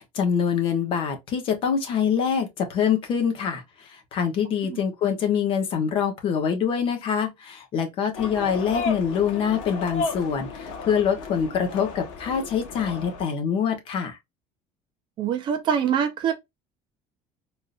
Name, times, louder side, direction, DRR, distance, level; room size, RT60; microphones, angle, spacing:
voice 1, 0.0-14.2, left 7 dB, 40° left, 1.0 m, -25 dB
sound 1, 8.1-13.2, left 4 dB, 75° left, 1.2 m, -34 dB
voice 2, 15.2-16.3, right 8 dB, 35° right, 0.7 m, -24 dB
3.7 x 2.6 x 2.5 m
cardioid pair, 175°, 13 cm